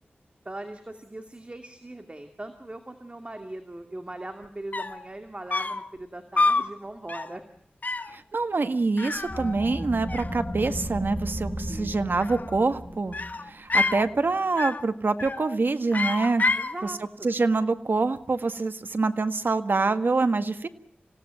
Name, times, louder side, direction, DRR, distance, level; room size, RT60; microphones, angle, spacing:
voice 1, 0.4-7.4 11.7-12.0 16.6-17.3, right 1 dB, 30° right, 6 dB, 2.4 m, -40 dB
sound 1, 4.4-4.5 4.7-5.1 5.5-5.9 6.4-6.7 7.1-7.4 7.8-8.2 9.0-9.8 10.1-10.8 12.0-12.7 13.1-14.1 14.6-14.9 15.2-15.5 15.9-16.7, left 3 dB, 50° left, 1.5 m, -28 dB
voice 2, 8.1-13.2 13.5-16.4 16.8-16.9 17.2-20.7, right 3 dB, 60° right, 9 dB, 1.7 m, -25 dB
sound 2, 9.1-14.5, equal, 15° right, 7.7 m, -35 dB
27.0 x 17.0 x 9.2 m, 0.68 s
wide cardioid pair, 70°, 4 cm